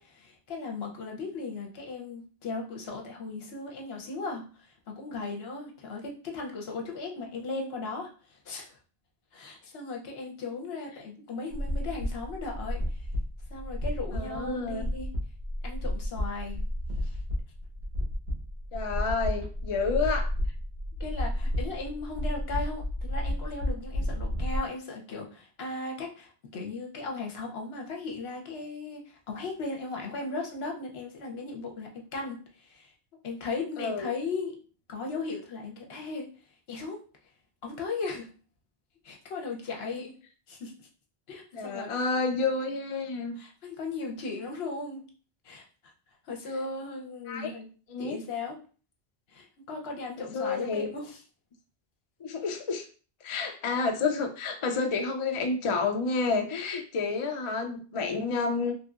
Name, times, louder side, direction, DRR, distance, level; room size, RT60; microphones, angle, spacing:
voice 1, 0.0-8.8 9.3-13.1 13.5-15.1 15.6-16.6 17.0-17.2 21.0-32.9 33.2-34.6 34.9-36.3 36.7-37.0 37.6-38.3 39.0-40.1 40.5-40.9 41.3-42.1 43.4-45.0 45.4-45.9 46.2-47.7 48.0-48.6 49.3-51.2, left 3 dB, 70° left, 1 dB, 1.0 m, -37 dB
sound 1, 11.5-24.6, left 1 dB, 75° right, 1.2 m, -32 dB
voice 2, 14.1-14.9 18.7-20.3 33.8-34.1 41.5-43.4 47.3-47.5 47.9-48.2 50.3-50.9 52.2-52.8 53.2-58.7, left 4 dB, 55° left, 4 dB, 0.3 m, -29 dB
3.1 x 2.7 x 2.4 m, 0.38 s
omnidirectional pair, 1.1 m